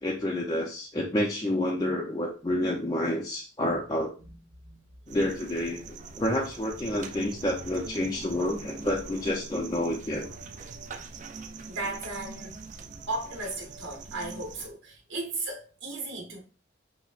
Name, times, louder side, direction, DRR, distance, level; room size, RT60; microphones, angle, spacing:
voice 1, 0.0-4.1 5.1-10.3, left 1 dB, 20° left, 0.4 m, -29 dB
sound 1, 5.1-14.7, right 4 dB, 40° right, 0.4 m, -43 dB
voice 2, 11.7-12.6 13.1-16.4, right 2 dB, 85° right, 0.9 m, -36 dB
5.6 x 2.0 x 2.4 m
head